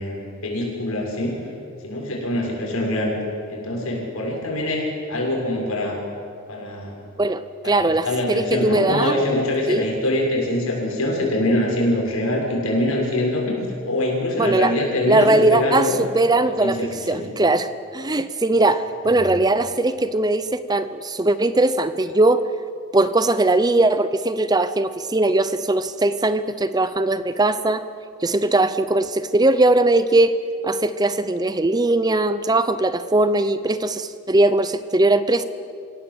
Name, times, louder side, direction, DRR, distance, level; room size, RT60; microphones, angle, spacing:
voice 1, 0.0-1.4 1.8-3.1 3.5-6.0 6.5-7.0 7.6-13.6 13.9-15.9 16.4-17.3 19.0-19.4, left 1 dB, 75° left, -1 dB, 7.0 m, -24 dB
voice 2, 7.2-9.1 9.7-9.9 14.4-14.8 15.1-22.4 22.9-27.8 28.2-30.4 30.6-35.4, right 2 dB, 20° right, 12 dB, 0.7 m, -20 dB
27.0 x 17.5 x 7.9 m, 2.4 s
head